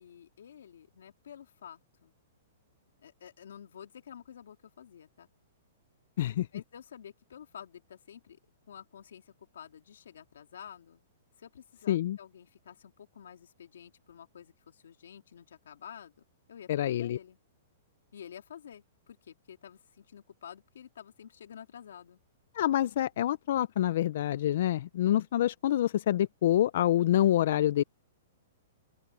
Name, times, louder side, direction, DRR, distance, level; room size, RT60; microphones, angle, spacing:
voice 1, 0.0-2.1 3.0-5.3 6.4-8.4 8.7-11.0 11.4-16.1 16.5-16.7 17.0-17.4 18.1-22.2, left 8 dB, 80° left, 3.5 m, -50 dB
voice 2, 11.9-12.2 16.7-17.2 22.5-27.8, left 12 dB, 45° left, 0.3 m, -26 dB
open air
hypercardioid pair, 180°, 0 cm